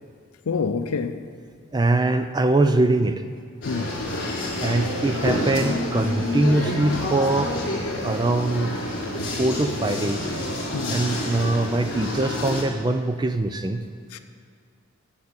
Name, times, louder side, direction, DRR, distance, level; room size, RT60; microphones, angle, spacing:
voice 1, 0.5-1.2 3.6-4.0 10.7-11.0 14.1-14.2, left 5 dB, 80° left, 0.5 m, -27 dB
voice 2, 1.7-3.3 4.6-7.6 8.0-8.8 9.4-10.3 10.9-13.8, right 2 dB, 20° right, 0.3 m, -22 dB
sound 1, 3.6-12.6, left 1 dB, 50° left, 3.4 m, -28 dB
8.0 x 7.6 x 8.7 m
head